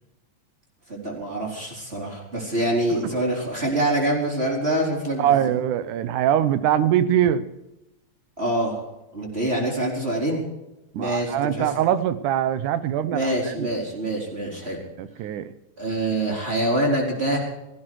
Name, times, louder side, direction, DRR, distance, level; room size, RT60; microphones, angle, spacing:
voice 1, 0.9-5.4 8.4-8.8 9.1-10.4 11.0-11.7 13.1-14.8 15.8-17.4, right 1 dB, 20° right, -2 dB, 4.4 m, -25 dB
voice 2, 5.2-7.5 10.9-13.7 15.0-15.5, right 10 dB, 85° right, 14 dB, 2.4 m, -23 dB
17.0 x 15.5 x 4.7 m, 0.94 s
omnidirectional pair, 3.5 m